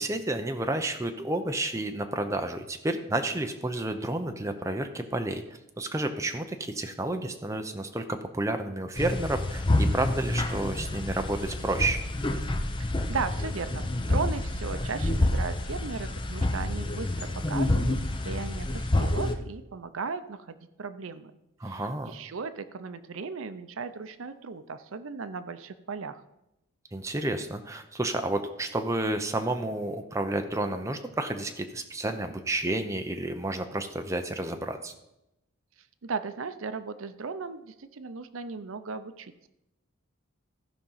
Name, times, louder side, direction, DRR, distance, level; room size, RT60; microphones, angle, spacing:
voice 1, 0.0-5.4 5.8-12.0 21.6-22.2 26.9-34.9, right 2 dB, 15° right, 6 dB, 0.7 m, -30 dB
sound 1, 9.0-19.3, left 1 dB, 20° left, 0.7 m, -28 dB
voice 2, 12.8-18.0 18.2-21.3 21.6-26.2 36.0-39.5, right 5 dB, 70° right, 12 dB, 0.6 m, -36 dB
15.0 x 5.1 x 5.6 m, 0.88 s
head